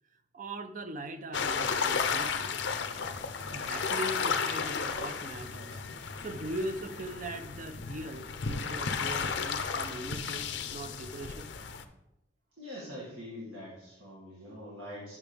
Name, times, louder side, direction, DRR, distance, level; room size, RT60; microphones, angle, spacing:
voice 1, 0.3-2.5 3.5-5.8 6.2-11.5, right 1 dB, 40° right, 10 dB, 0.5 m, -40 dB
sound 1, 1.3-11.8, left 5 dB, 60° left, 0.5 m, -33 dB
voice 2, 12.6-15.1, left 1 dB, 75° right, -6 dB, 2.0 m, -44 dB
8.7 x 5.9 x 3.4 m, 0.89 s
head